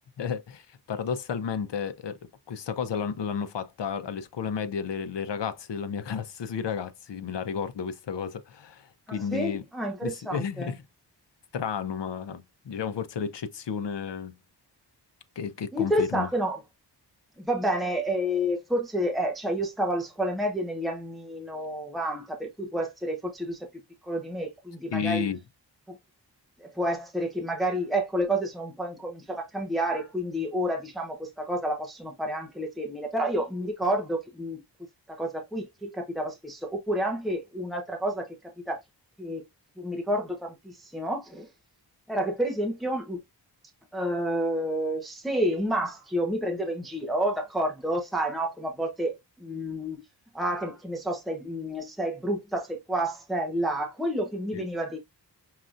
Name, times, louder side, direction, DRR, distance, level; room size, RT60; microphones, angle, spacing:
voice 1, 0.2-2.2 2.5-9.6 10.0-10.8 11.5-14.3 15.4-16.3 24.9-25.4 54.5-54.6, left 6 dB, 75° left, 0.9 m, -32 dB
voice 2, 9.1-10.7 15.7-16.6 17.4-23.7 24.0-25.3 25.9-26.0 26.6-34.6 35.1-38.3 38.7-38.8 39.2-39.4 39.8-41.5 42.1-43.2 43.9-50.0 50.3-55.0, equal, ahead, 1.0 m, -29 dB
6.6 x 3.0 x 2.5 m
wide cardioid pair, 175°, 42 cm